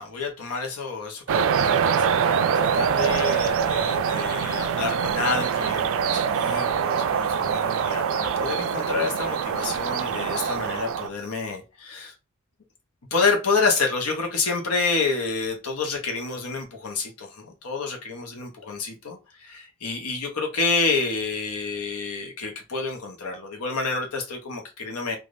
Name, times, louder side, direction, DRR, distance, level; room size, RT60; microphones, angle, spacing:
voice 1, 0.0-12.1 13.1-25.2, left 4 dB, 90° left, 0.9 m, -28 dB
sound 1, 1.3-11.1, right 7 dB, 65° right, 0.3 m, -24 dB
3.4 x 2.5 x 2.5 m
head